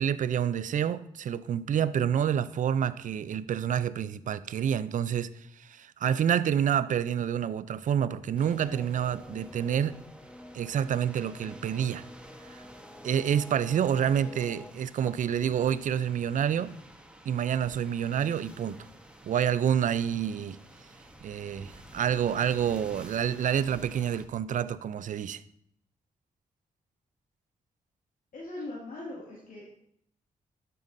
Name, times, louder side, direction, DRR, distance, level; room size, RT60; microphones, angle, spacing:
voice 1, 0.0-5.3 5.6-10.0 10.5-12.0 12.6-12.7 13.0-16.7 17.3-18.9 19.2-20.6 21.2-25.4, right 9 dB, 60° right, 0.4 m, -28 dB
sound 1, 8.4-24.3, right 1 dB, 5° right, 1.2 m, -51 dB
sound 2, 8.5-14.7, left 1 dB, 10° left, 0.5 m, -48 dB
voice 2, 28.3-29.7, left 2 dB, 70° left, 2.2 m, -40 dB
12.0 x 6.8 x 2.6 m
supercardioid pair, 55°, 15 cm